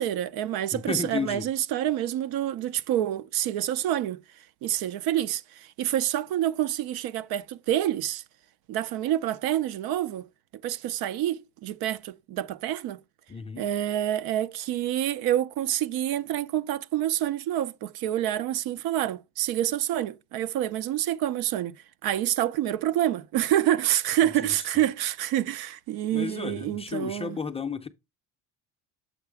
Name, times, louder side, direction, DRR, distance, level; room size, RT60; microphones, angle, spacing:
voice 1, 0.0-4.2 4.6-8.2 8.7-10.3 10.6-13.0 13.6-21.8 22.0-27.4, right 12 dB, 70° right, 0.6 m, -27 dB
voice 2, 0.7-1.5 13.3-13.7 24.4-24.6 26.1-27.9, left 5 dB, 15° left, 0.5 m, -33 dB
7.1 x 4.8 x 3.5 m
cardioid pair, 115°, 39 cm